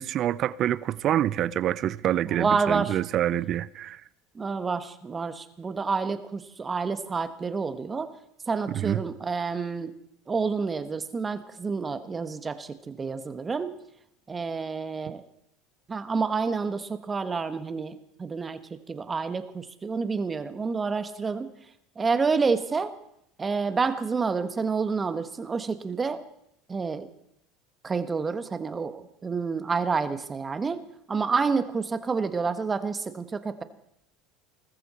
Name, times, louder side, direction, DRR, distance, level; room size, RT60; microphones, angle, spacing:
voice 1, 0.0-4.0 8.7-9.0, right 12 dB, 50° right, 0.6 m, -26 dB
voice 2, 2.3-3.0 4.3-8.2 8.5-9.9 10.3-13.7 14.3-15.2 15.9-21.5 22.0-22.9 23.4-26.2 26.7-27.1 27.8-30.8 31.1-33.6, right 5 dB, 25° right, 1.4 m, -29 dB
20.0 x 14.5 x 4.4 m
hypercardioid pair, 85°, 0 cm